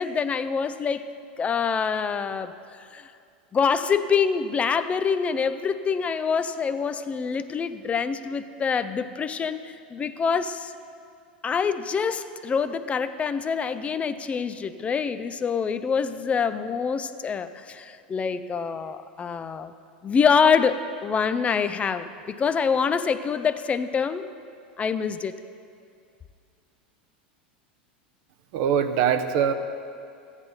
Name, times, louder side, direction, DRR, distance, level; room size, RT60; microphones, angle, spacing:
voice 1, 0.0-3.1 3.5-10.7 11.4-19.7 20.0-24.3 24.8-25.4, left 6 dB, 25° left, 11 dB, 0.4 m, -25 dB
voice 2, 28.5-29.5, right 8 dB, 60° right, 8 dB, 0.8 m, -22 dB
14.0 x 9.7 x 4.0 m, 2.4 s
hypercardioid pair, 90°, 5 cm